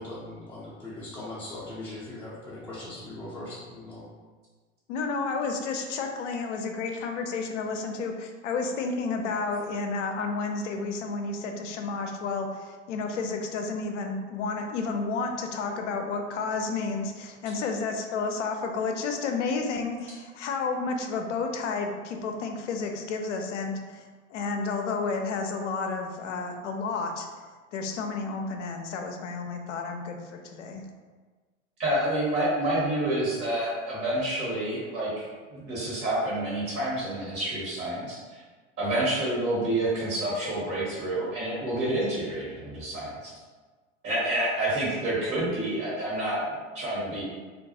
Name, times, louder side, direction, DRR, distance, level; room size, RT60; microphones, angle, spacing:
voice 1, 0.0-4.1, left 1 dB, 5° left, -11 dB, 0.5 m, -40 dB
voice 2, 4.9-24.0 24.3-27.3 27.7-30.8, left 4 dB, 70° left, 4 dB, 0.5 m, -31 dB
voice 3, 31.8-38.4 38.8-43.3 44.0-47.2, right 1 dB, 40° right, -7 dB, 1.1 m, -28 dB
2.4 x 2.2 x 2.7 m, 1.4 s
figure-of-eight pair, 85°, 38 cm